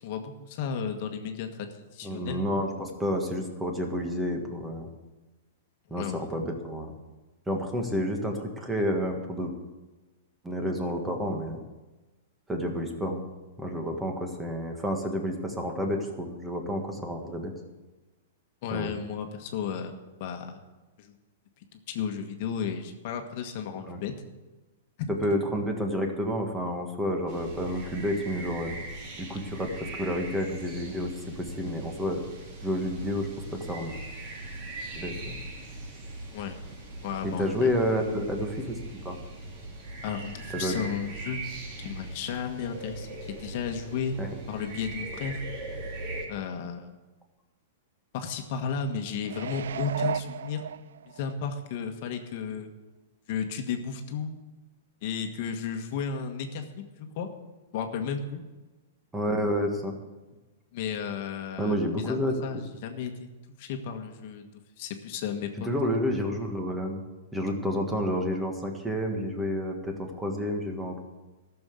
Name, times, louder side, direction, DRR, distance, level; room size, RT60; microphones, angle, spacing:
voice 1, 0.0-2.4 5.9-6.3 18.6-20.6 21.0-21.1 21.9-24.1 25.0-25.1 36.3-36.5 37.0-37.7 40.0-41.4 41.8-44.2 44.5-45.4 46.3-46.9 48.1-50.6 51.1-52.7 53.3-54.3 55.0-57.3 57.7-58.4 60.7-62.2 62.4-63.3 63.6-64.4 64.8-65.7, left 6 dB, 45° left, 5 dB, 1.4 m, -33 dB
voice 2, 2.0-4.9 5.9-6.9 7.5-9.5 10.4-11.6 12.5-13.2 13.6-17.5 18.7-18.9 23.9-24.0 25.1-28.7 29.2-29.7 30.0-31.1 31.4-32.2 32.6-33.9 34.9-35.4 37.2-39.2 40.5-40.8 41.8-41.9 44.2-44.3 59.1-59.9 61.6-62.4 65.6-67.0 67.3-71.0, equal, 5° right, 3 dB, 1.7 m, -30 dB
sound 1, 27.3-46.2, right 2 dB, 35° right, 2.9 m, -40 dB
sound 2, 49.2-51.3 51.8-51.9, right 8 dB, 85° right, 0.3 m, -34 dB
14.0 x 7.1 x 8.1 m, 1.2 s
hypercardioid pair, 155°, 0 cm